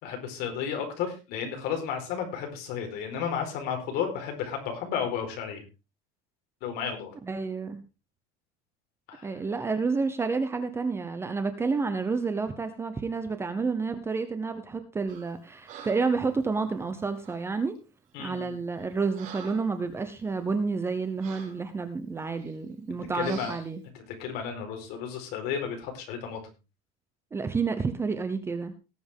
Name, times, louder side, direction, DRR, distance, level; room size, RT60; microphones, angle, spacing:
voice 1, 0.0-5.6 6.6-7.1 9.1-9.4 18.1-18.5 23.1-23.5 23.9-26.4, left 7 dB, 50° left, 4 dB, 4.5 m, -33 dB
voice 2, 7.3-7.8 9.2-17.8 18.2-23.8 27.3-28.7, right 4 dB, 10° right, 9 dB, 0.8 m, -30 dB
Breathing, 15.1-15.3 15.7-16.2 17.2-17.5 18.2-18.3 18.7-19.8 20.2-20.4 21.2-21.6 22.3-22.5 23.2-23.7, right 7 dB, 40° right, 6.1 m, -47 dB
18.5 x 7.8 x 3.7 m, 0.29 s
cardioid pair, 170°, 21 cm